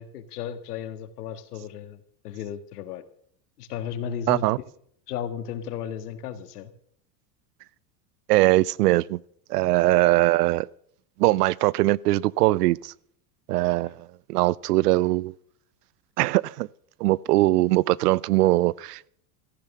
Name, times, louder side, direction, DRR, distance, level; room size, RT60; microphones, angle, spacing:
voice 1, 0.0-3.0 3.6-4.5 5.1-6.7 13.6-13.9, left 8 dB, 80° left, 1.7 m, -35 dB
voice 2, 4.3-4.6 8.3-9.2 9.5-10.7 11.2-12.9 13.5-15.3 16.2-16.7 17.0-19.1, right 18 dB, 85° right, 0.6 m, -21 dB
14.5 x 11.0 x 6.0 m
supercardioid pair, 110°, 45 cm